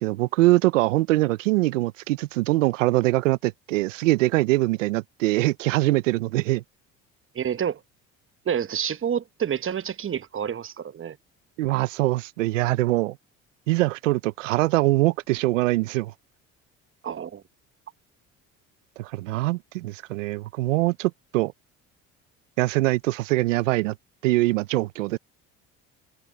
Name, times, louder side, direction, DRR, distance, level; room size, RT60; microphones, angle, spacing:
voice 1, 0.0-6.6 11.6-13.2 13.7-16.1 19.0-21.5 22.6-23.9 24.2-25.2, right 19 dB, 90° right, 0.7 m, -23 dB
voice 2, 7.3-7.8 8.4-11.2 17.0-17.4, right 8 dB, 35° right, 1.1 m, -28 dB
hypercardioid pair, 65°, 37 cm